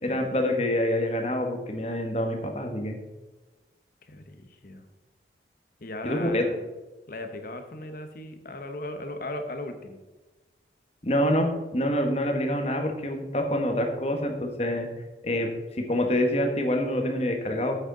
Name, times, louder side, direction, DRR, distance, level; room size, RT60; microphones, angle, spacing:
voice 1, 0.0-3.0 6.0-6.4 11.0-14.9 15.2-17.8, left 1 dB, 35° left, 3 dB, 1.4 m, -26 dB
voice 2, 4.0-4.8 5.8-6.7 7.1-10.0, left 1 dB, 50° left, 7 dB, 1.0 m, -37 dB
8.8 x 8.0 x 3.9 m, 1.2 s
head